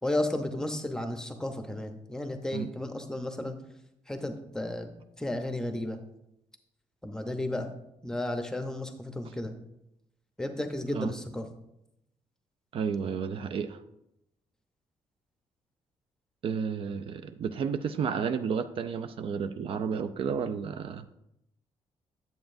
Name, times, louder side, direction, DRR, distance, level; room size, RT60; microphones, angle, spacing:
voice 1, 0.0-3.6 4.1-4.9 5.2-6.0 7.0-7.7 8.0-9.5 10.4-11.5, left 1 dB, 5° left, 6 dB, 0.7 m, -33 dB
voice 2, 12.7-13.8 16.4-21.0, right 6 dB, 55° right, 9 dB, 0.4 m, -32 dB
9.2 x 7.8 x 2.6 m, 0.83 s
cardioid pair, 135°, 11 cm